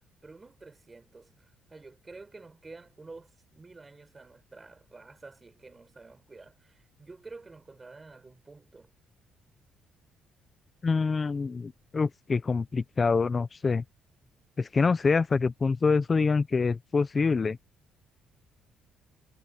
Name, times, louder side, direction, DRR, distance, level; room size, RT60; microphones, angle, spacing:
voice 1, 0.2-8.9, right 3 dB, 20° right, 4.8 m, -50 dB
voice 2, 10.8-13.8 14.6-17.6, left 4 dB, 30° left, 0.8 m, -26 dB
cardioid pair, 115°, 0 cm